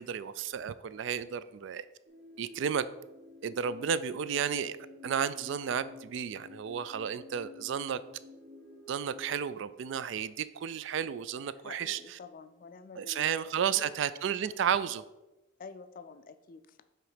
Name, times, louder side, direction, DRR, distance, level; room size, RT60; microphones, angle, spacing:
voice 1, 0.0-1.8 2.4-2.8 3.4-4.8 5.0-8.0 8.9-12.2 13.0-15.0, right 8 dB, 65° right, 15 dB, 0.3 m, -32 dB
sound 1, 2.1-9.4, left 3 dB, 50° right, 1.4 m, -52 dB
voice 2, 11.6-13.4 13.8-13.9 15.6-16.8, left 4 dB, 45° left, 11 dB, 0.3 m, -48 dB
7.6 x 3.1 x 4.9 m, 1.0 s
head